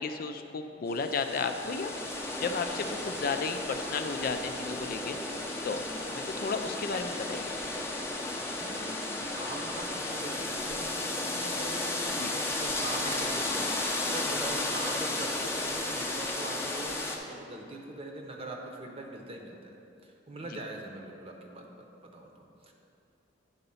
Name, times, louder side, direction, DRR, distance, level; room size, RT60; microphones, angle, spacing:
voice 1, 0.0-1.9 2.4-5.8 6.1-7.5 12.2-12.3, left 4 dB, 55° left, 7 dB, 0.4 m, -33 dB
sound 1, 0.9-17.2, left 2 dB, 15° left, 0.7 m, -34 dB
voice 2, 8.6-13.7 14.0-19.7 20.0-21.7 22.0-22.7, right 1 dB, 35° right, 1 dB, 0.9 m, -42 dB
9.6 x 4.0 x 5.5 m, 2.6 s
head